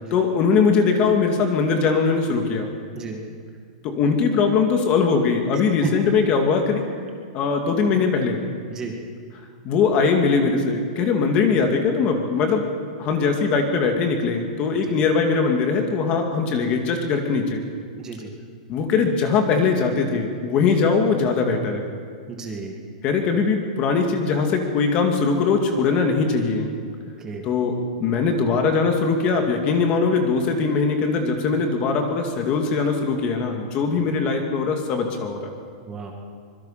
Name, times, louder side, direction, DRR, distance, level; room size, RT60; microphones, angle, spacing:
voice 1, 0.1-2.7 3.8-6.9 7.3-8.4 9.6-12.6 13.0-17.6 18.7-21.9 23.0-26.7 27.4-35.5, left 5 dB, 25° left, 4 dB, 2.2 m, -21 dB
voice 2, 18.0-18.3 22.3-22.8 27.2-27.4 35.8-36.1, right 5 dB, 15° right, 1 dB, 2.0 m, -33 dB
25.0 x 22.5 x 5.8 m, 2.1 s
supercardioid pair, 170°, 4 cm